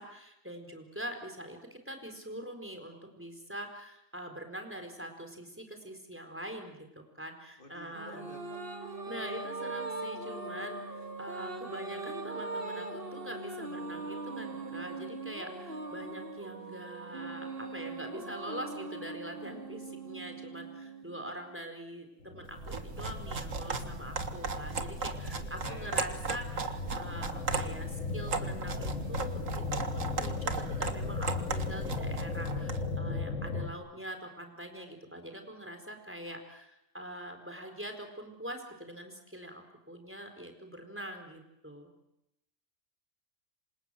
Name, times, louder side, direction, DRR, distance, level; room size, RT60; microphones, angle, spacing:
voice 1, 0.0-8.2 9.1-41.9, equal, 10° right, 5 dB, 4.5 m, -44 dB
voice 2, 7.6-8.6 25.4-26.0, left 1 dB, 40° left, 4 dB, 3.6 m, -50 dB
sound 1, 7.9-21.6, right 3 dB, 45° right, 2.3 m, -40 dB
sound 2, 22.2-33.7, left 3 dB, 65° left, 2.4 m, -37 dB
sound 3, 22.5-32.9, right 4 dB, 85° right, 2.1 m, -37 dB
28.0 x 26.5 x 7.8 m, 0.86 s
omnidirectional pair, 1.3 m